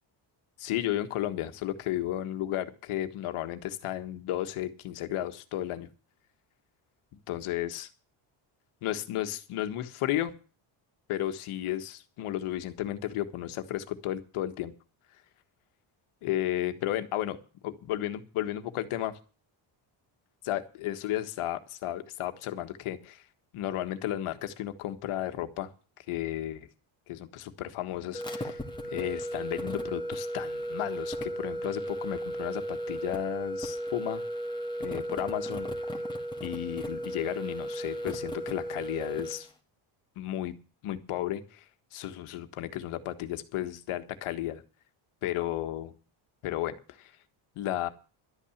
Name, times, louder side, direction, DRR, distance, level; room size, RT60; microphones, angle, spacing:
voice 1, 0.6-5.9 7.3-7.9 8.8-10.3 11.1-14.7 16.2-17.4 17.6-19.2 20.4-23.2 23.5-25.7 26.1-26.7 27.1-28.6 28.9-34.2 34.8-35.7 36.4-39.5 40.2-40.5 40.8-41.6 41.9-44.6 45.2-45.9 46.4-47.1 47.5-47.9, left 13 dB, 85° left, 8 dB, 1.6 m, -33 dB
sound 1, 28.1-39.5, equal, 10° left, 1.7 m, -35 dB
12.0 x 8.9 x 7.2 m, 0.37 s
cardioid pair, 135°, 49 cm